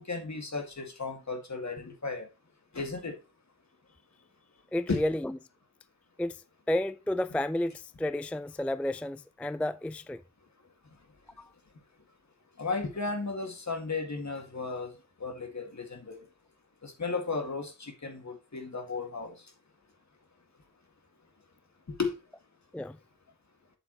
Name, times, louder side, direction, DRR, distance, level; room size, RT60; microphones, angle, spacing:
voice 1, 0.0-2.3 2.7-3.2 4.9-5.0 12.6-14.9 15.2-16.2 16.8-19.3 22.0-22.1, left 4 dB, 55° left, 2.0 m, -34 dB
voice 2, 4.7-5.4 6.2-6.4 6.7-10.2 11.4-11.5 22.7-23.0, left 1 dB, 5° left, 0.3 m, -31 dB
7.9 x 7.5 x 3.0 m
wide cardioid pair, 65°, 33 cm